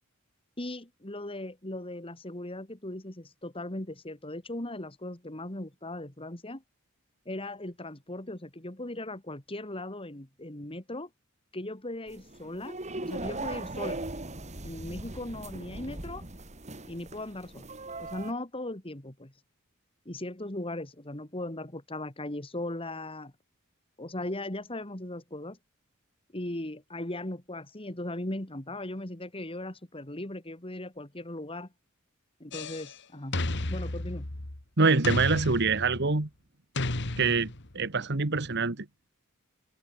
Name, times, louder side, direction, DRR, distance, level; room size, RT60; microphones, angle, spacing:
voice 1, 0.6-6.6 7.3-11.1 11.5-14.0 14.6-16.2 16.8-17.7 18.0-19.3 20.1-23.3 24.0-25.6 26.3-31.7 32.4-33.4 33.7-34.3, left 1 dB, 25° left, 2.5 m, -38 dB
sound 1, 12.1-18.3, right 2 dB, 35° right, 3.5 m, -39 dB
sound 2, 32.5-32.9 33.3-34.6 35.0-36.1 36.8-37.8, left 2 dB, 55° left, 2.1 m, -33 dB
voice 2, 34.8-36.3 37.2-37.5 37.7-38.8, right 4 dB, 55° right, 1.5 m, -25 dB
open air
head